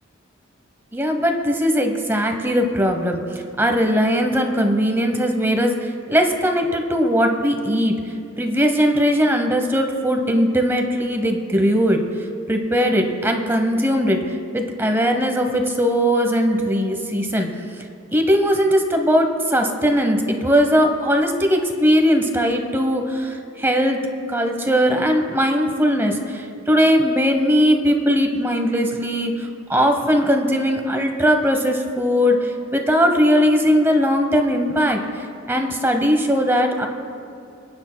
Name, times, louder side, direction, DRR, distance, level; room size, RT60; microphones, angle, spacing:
voice 1, 0.9-8.0 8.4-12.0 12.5-17.5 18.1-24.0 24.3-36.9, equal, 10° right, 4 dB, 0.8 m, -19 dB
28.0 x 9.6 x 2.2 m, 2.7 s
head